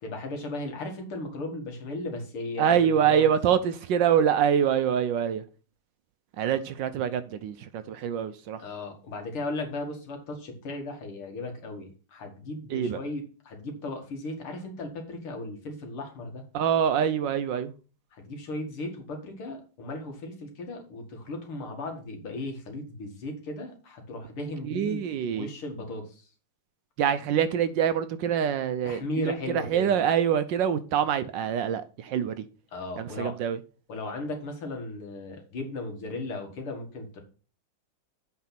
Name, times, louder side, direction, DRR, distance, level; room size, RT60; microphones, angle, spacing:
voice 1, 0.0-3.3 8.6-16.4 18.1-25.1 25.3-26.3 28.8-30.0 32.7-33.3 33.9-37.2, left 2 dB, 80° left, 2.9 m, -36 dB
voice 2, 2.6-5.4 6.4-8.6 12.7-13.0 16.5-17.7 24.6-25.5 27.0-32.5 33.0-33.6, right 8 dB, 70° right, 1.2 m, -25 dB
8.1 x 4.8 x 5.9 m
omnidirectional pair, 2.3 m